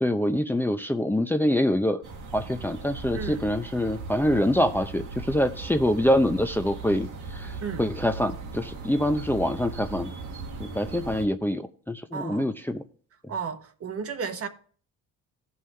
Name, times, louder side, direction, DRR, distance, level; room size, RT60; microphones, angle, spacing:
voice 1, 0.0-2.0 2.3-10.1 10.6-12.8, left 1 dB, 5° left, 0.6 m, -25 dB
sound 1, 2.0-11.3, right 4 dB, 80° right, 1.6 m, -38 dB
voice 2, 12.1-12.5 13.3-14.5, right 6 dB, 50° right, 1.1 m, -33 dB
15.0 x 5.6 x 3.3 m
cardioid pair, 90°, 30 cm